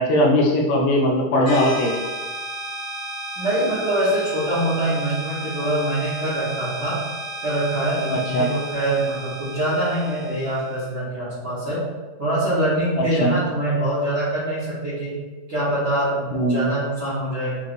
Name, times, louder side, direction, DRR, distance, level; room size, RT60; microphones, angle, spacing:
voice 1, 0.0-2.0 8.1-8.5 13.0-13.3 16.3-16.7, left 1 dB, 80° left, -1 dB, 2.0 m, -20 dB
sound 1, 1.5-10.8, right 1 dB, 65° left, 1.1 m, -33 dB
voice 2, 3.4-7.0 7.4-11.8 12.2-15.1 15.5-17.6, right 1 dB, 60° right, -12 dB, 1.3 m, -24 dB
5.1 x 3.1 x 2.5 m, 1.3 s
omnidirectional pair, 3.9 m